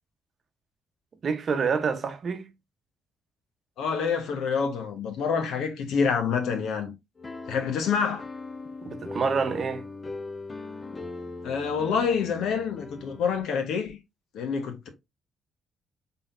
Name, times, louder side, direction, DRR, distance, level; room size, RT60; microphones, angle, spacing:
voice 1, 1.2-2.5 8.8-9.9, right 5 dB, 50° right, 0.7 m, -27 dB
voice 2, 3.8-6.9 7.5-8.2 11.4-14.0 14.3-14.9, left 6 dB, 80° left, 1.1 m, -27 dB
sound 1, 7.2-13.4, left 3 dB, 25° left, 0.7 m, -40 dB
3.9 x 3.9 x 2.5 m
cardioid pair, 90°, 0 cm